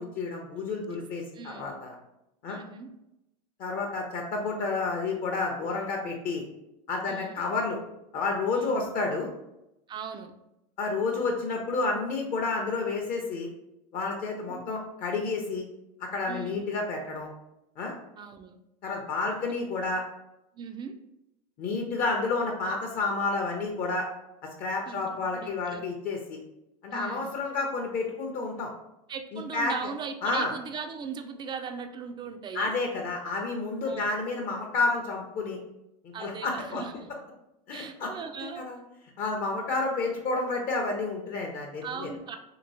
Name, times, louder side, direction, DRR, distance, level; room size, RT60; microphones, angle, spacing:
voice 1, 0.0-1.9 2.4-2.6 3.6-6.4 6.9-7.8 8.1-9.3 10.8-13.5 13.9-15.6 16.0-17.3 17.8-17.9 18.8-20.0 21.6-24.1 24.6-26.4 26.8-28.7 29.3-29.7 30.2-30.5 32.5-35.6 36.0-36.8 37.7-38.1 38.6-38.8 39.2-42.1, left 3 dB, 40° left, 1 dB, 0.6 m, -30 dB
voice 2, 0.6-1.0 1.3-1.8 2.5-2.9 7.1-7.4 8.5-8.8 9.9-10.3 14.5-14.6 16.3-16.6 18.2-18.6 20.5-21.0 24.9-25.0 25.3-25.8 26.9-27.3 29.1-32.7 33.8-34.1 36.1-37.1 37.7-38.6 41.8-42.4, right 6 dB, 20° right, 6 dB, 0.3 m, -39 dB
2.9 x 2.9 x 2.7 m, 0.87 s
hypercardioid pair, 100°, 21 cm